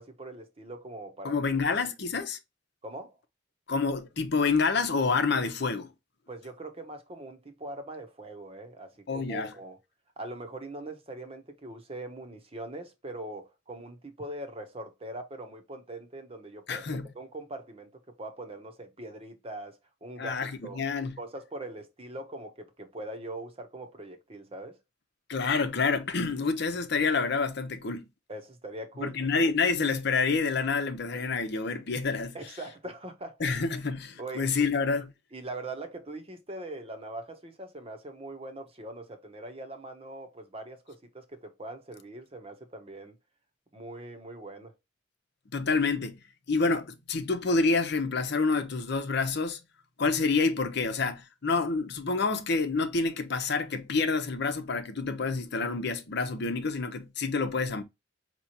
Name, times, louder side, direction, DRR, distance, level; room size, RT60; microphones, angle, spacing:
voice 1, 0.0-1.4 2.8-3.2 6.3-9.8 10.2-16.9 17.1-17.9 18.2-20.4 20.6-20.8 21.2-24.8 28.3-29.3 32.3-33.5 34.2-34.5 35.3-43.2 43.7-44.7, right 2 dB, 30° right, 0.9 m, -42 dB
voice 2, 1.2-2.4 3.7-5.9 9.1-9.5 16.7-17.1 20.2-20.5 20.8-21.2 25.3-28.1 29.0-32.4 33.4-35.1 45.5-46.2 46.5-49.6 50.0-57.8, left 4 dB, 60° left, 0.8 m, -28 dB
5.4 x 3.0 x 2.8 m
head